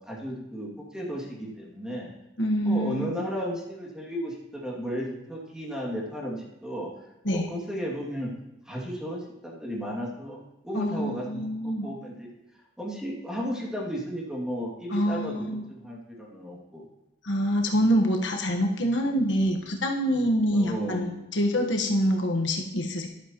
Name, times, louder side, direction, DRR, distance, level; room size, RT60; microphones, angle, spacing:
voice 1, 0.1-2.1 2.6-6.9 7.3-8.3 8.7-12.3 12.8-15.3 15.8-16.8 20.5-21.1, equal, 5° right, -3 dB, 2.4 m, -34 dB
voice 2, 2.4-3.0 7.2-7.5 10.7-11.9 14.9-15.6 17.2-23.1, equal, 85° left, 2 dB, 1.4 m, -25 dB
12.5 x 11.5 x 3.0 m, 0.96 s
head